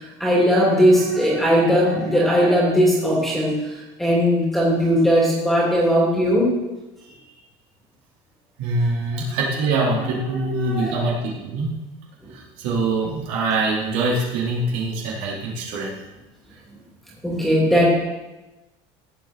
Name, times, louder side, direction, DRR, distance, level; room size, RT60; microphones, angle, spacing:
voice 1, 0.0-3.6 4.0-6.6 9.9-11.1 12.2-12.3 17.2-17.9, equal, ahead, -4 dB, 3.0 m, -19 dB
voice 2, 8.6-11.7 12.3-16.0, right 2 dB, 65° right, -5 dB, 4.4 m, -24 dB
17.0 x 8.3 x 4.5 m, 1.1 s
cardioid pair, 170°, 13 cm